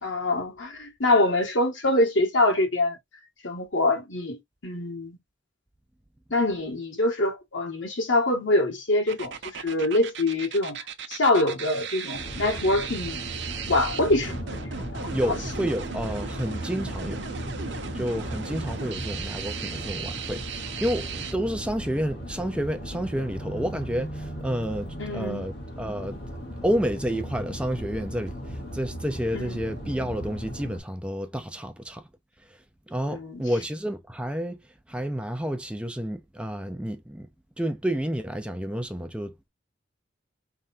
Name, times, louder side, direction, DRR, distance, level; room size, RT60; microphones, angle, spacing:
voice 1, 0.0-3.0 3.4-5.2 6.3-10.8 11.1-13.2 13.7-15.2 25.0-25.5 29.3-29.6 33.1-33.4, left 2 dB, 90° left, 1.6 m, -25 dB
sound 1, 9.1-21.3, right 6 dB, 70° right, 0.7 m, -37 dB
sound 2, 12.1-30.8, equal, 55° left, 1.6 m, -37 dB
voice 2, 15.1-17.2 17.9-26.2 26.6-32.1 32.5-37.3 37.6-39.5, equal, 5° right, 0.5 m, -30 dB
4.3 x 3.4 x 2.7 m
head